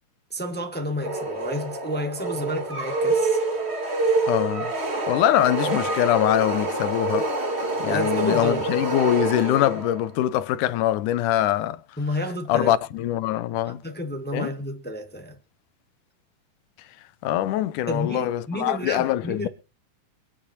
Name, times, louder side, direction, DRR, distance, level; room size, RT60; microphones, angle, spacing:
voice 1, 0.3-3.4 7.9-8.6 12.0-12.7 13.8-15.4 17.9-19.5, equal, 15° left, 0.4 m, -30 dB
sound 1, 1.0-10.1, right 2 dB, 25° right, 1.5 m, -26 dB
voice 2, 4.3-4.7 5.1-7.3 7.8-11.8 12.5-13.8 14.3-14.5 17.2-19.5, left 13 dB, 85° left, 2.3 m, -23 dB
23.5 x 10.5 x 2.8 m
omnidirectional pair, 3.5 m